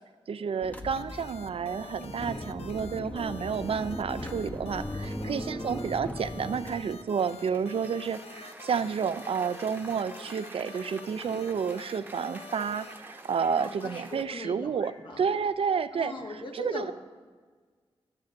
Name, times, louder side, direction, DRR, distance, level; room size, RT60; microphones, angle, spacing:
voice 1, 0.3-14.9 15.2-16.1 16.5-16.9, right 6 dB, 60° right, 13 dB, 0.4 m, -30 dB
sound 1, 0.6-6.8, left 1 dB, 15° left, 0.8 m, -38 dB
sound 2, 0.9-12.9, left 5 dB, 65° left, 0.5 m, -47 dB
Cheering / Applause, 7.1-14.2, right 2 dB, 15° right, 0.9 m, -48 dB
voice 2, 13.6-15.3 15.9-16.9, left 2 dB, 50° left, 2 dB, 1.3 m, -40 dB
12.5 x 8.5 x 2.5 m, 1.5 s
cardioid pair, 45°, 11 cm